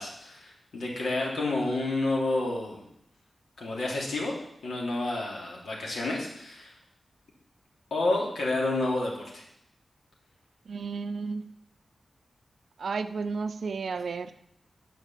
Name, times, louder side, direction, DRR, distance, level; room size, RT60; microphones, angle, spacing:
voice 1, 0.0-2.8 3.6-4.3 4.6-6.7 7.9-9.4, left 2 dB, 85° left, -3 dB, 3.2 m, -29 dB
voice 2, 10.7-11.5 12.8-14.3, right 4 dB, 60° right, 11 dB, 0.6 m, -32 dB
10.0 x 5.9 x 7.5 m, 0.75 s
wide cardioid pair, 175°, 0 cm